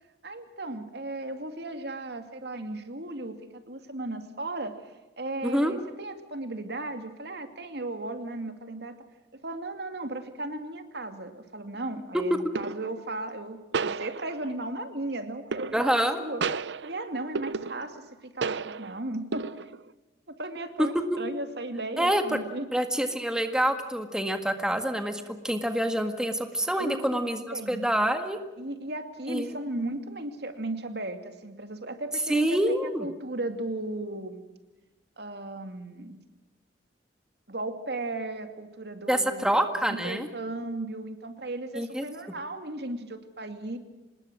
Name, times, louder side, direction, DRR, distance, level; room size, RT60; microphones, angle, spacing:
voice 1, 0.2-4.8 5.2-9.0 9.3-16.4 16.8-19.7 20.3-22.7 26.8-27.2 27.5-27.8 28.6-32.6 33.0-34.4 35.2-36.2 37.5-43.8, right 2 dB, 65° right, 8 dB, 2.5 m, -36 dB
voice 2, 5.4-5.7 12.1-12.4 15.7-16.2 22.0-22.4 22.7-28.4 29.3-29.6 32.3-33.1 39.1-40.3 41.7-42.0, equal, 5° right, 6 dB, 1.8 m, -26 dB
sound 1, 11.0-11.2 12.6-13.0 13.7-14.7 15.5-16.1 16.4-18.1 18.4-19.0 19.3-19.9, right 5 dB, 80° right, 0.7 m, -33 dB
26.0 x 20.5 x 6.2 m, 1.1 s
head